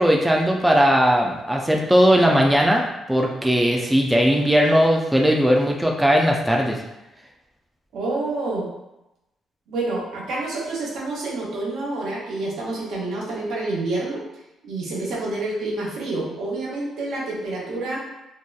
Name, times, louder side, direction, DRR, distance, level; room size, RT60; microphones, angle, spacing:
voice 1, 0.0-6.8, equal, 5° right, 0 dB, 0.3 m, -18 dB
voice 2, 7.9-8.7 9.7-14.2 14.6-18.0, right 2 dB, 80° right, -4 dB, 0.7 m, -28 dB
2.7 x 2.1 x 2.2 m, 0.94 s
cardioid pair, 90°, 0 cm